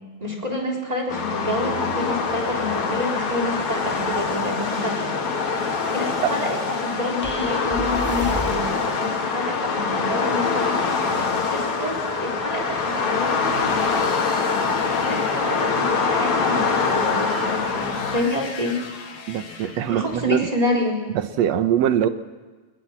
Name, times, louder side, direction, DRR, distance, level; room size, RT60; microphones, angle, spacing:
voice 1, 0.2-5.1 5.9-8.7 9.0-11.1 11.5-13.9 15.0-18.8 19.9-21.0, left 1 dB, 10° right, 1 dB, 3.7 m, -28 dB
sound 1, 1.1-18.2, left 4 dB, 65° left, 3.6 m, -24 dB
sound 2, 7.2-8.8, left 1 dB, 15° left, 0.3 m, -31 dB
sound 3, 12.7-20.4, left 5 dB, 50° left, 2.2 m, -39 dB
voice 2, 19.3-20.5 21.1-22.1, right 10 dB, 70° right, 10 dB, 1.9 m, -22 dB
21.5 x 20.0 x 7.4 m, 1.3 s
omnidirectional pair, 3.5 m